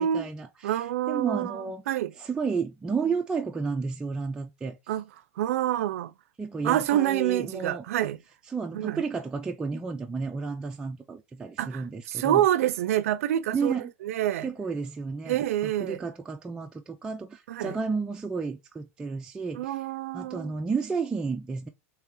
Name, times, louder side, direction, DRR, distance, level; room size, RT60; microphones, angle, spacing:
voice 1, 0.0-1.8 2.2-4.8 6.4-7.8 8.5-12.5 13.5-13.9 14.4-19.8 20.1-21.7, right 5 dB, 10° right, 0.3 m, -32 dB
voice 2, 0.6-2.1 4.9-5.0 5.4-6.1 6.6-8.2 8.7-9.0 11.6-13.7 14.0-14.5 15.3-16.0 17.5-17.8 19.5-20.5, right 12 dB, 80° right, 0.5 m, -27 dB
3.4 x 3.3 x 3.2 m
supercardioid pair, 145°, 8 cm